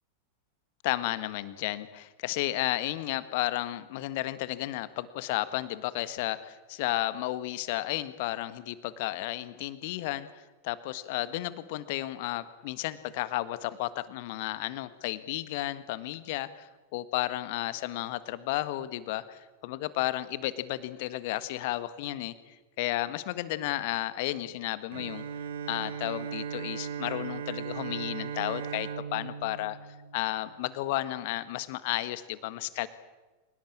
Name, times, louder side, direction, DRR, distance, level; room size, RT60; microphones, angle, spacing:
voice 1, 0.8-25.2 25.7-29.8 30.1-32.9, left 16 dB, 50° left, 14 dB, 1.6 m, -33 dB
Bowed string instrument, 24.9-30.8, right 7 dB, 60° right, 1.4 m, -38 dB
29.0 x 18.0 x 8.8 m, 1.2 s
figure-of-eight pair, 90°, 0 cm